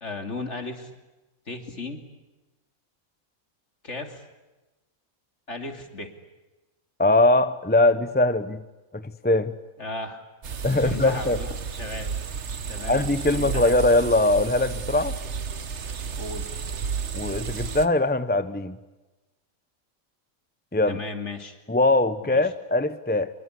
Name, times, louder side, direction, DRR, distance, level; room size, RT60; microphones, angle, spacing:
voice 1, 0.0-0.9 1.5-2.0 3.8-4.2 5.5-6.1 9.8-10.2 10.8-12.1 12.7-13.7 16.2-16.6 20.9-21.6 22.2-22.4, left 2 dB, 55° left, 6 dB, 3.1 m, -35 dB
voice 2, 7.0-8.6 8.9-9.5 10.6-11.4 12.8-15.2 17.1-18.8 20.7-21.0 21.7-23.3, left 2 dB, 10° left, 12 dB, 0.7 m, -21 dB
sound 1, 10.4-17.9, right 6 dB, 55° right, 1.5 m, -32 dB
26.0 x 23.5 x 9.8 m, 1.1 s
omnidirectional pair, 1.5 m